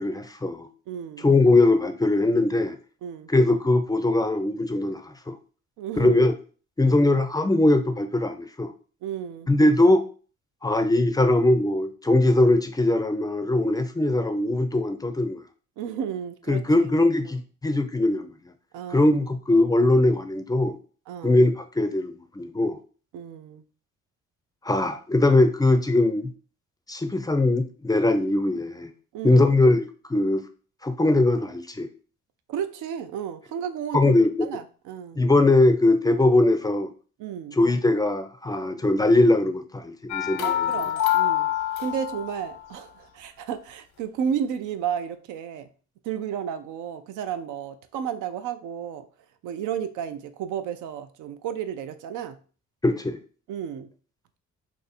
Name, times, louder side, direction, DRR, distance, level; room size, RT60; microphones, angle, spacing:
voice 1, 0.0-0.7 1.2-2.8 3.3-5.4 5.9-6.3 6.8-8.7 9.5-10.0 10.6-15.4 16.5-18.3 18.9-20.8 21.2-22.8 24.6-26.3 26.9-28.9 29.2-30.4 30.8-31.9 33.9-34.3 35.2-36.9 37.5-40.7 52.8-53.2, left 2 dB, 15° left, 8 dB, 0.4 m, -21 dB
voice 2, 0.9-1.3 3.0-3.3 5.8-6.2 6.8-7.1 9.0-9.5 15.8-16.6 18.7-19.1 21.1-21.4 23.1-23.6 29.1-29.4 32.5-35.2 37.2-37.6 40.4-41.5 41.8-45.7 46.0-49.1 49.4-52.4 53.5-53.9, right 8 dB, 85° right, 9 dB, 0.5 m, -32 dB
sound 1, 40.1-42.6, left 12 dB, 85° left, 0.8 m, -25 dB
2.6 x 2.6 x 4.1 m, 0.39 s
cardioid pair, 90°, 30 cm